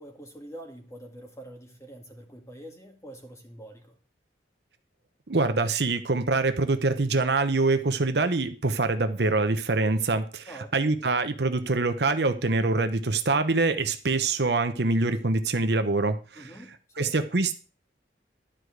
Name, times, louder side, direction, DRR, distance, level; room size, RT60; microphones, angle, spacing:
voice 1, 0.0-4.0 10.5-11.0 16.4-17.1, right 1 dB, 15° left, 2.1 m, -45 dB
voice 2, 5.3-16.5 17.0-17.6, right 3 dB, 65° right, 0.9 m, -25 dB
12.0 x 5.0 x 7.9 m
head